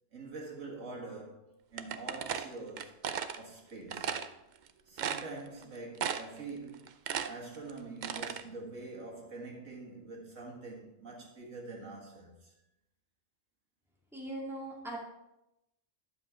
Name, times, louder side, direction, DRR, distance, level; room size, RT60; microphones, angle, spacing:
voice 1, 0.1-3.0 3.4-4.2 4.9-12.5, right 3 dB, 80° right, 2.1 m, -45 dB
sound 1, 1.8-3.4 3.9-4.3 4.7-4.8 5.0-5.6 6.0-6.4 6.7-8.4, right 8 dB, 60° right, 0.5 m, -35 dB
voice 2, 14.1-15.0, right 1 dB, ahead, 2.3 m, -40 dB
11.0 x 7.3 x 3.7 m
omnidirectional pair, 1.3 m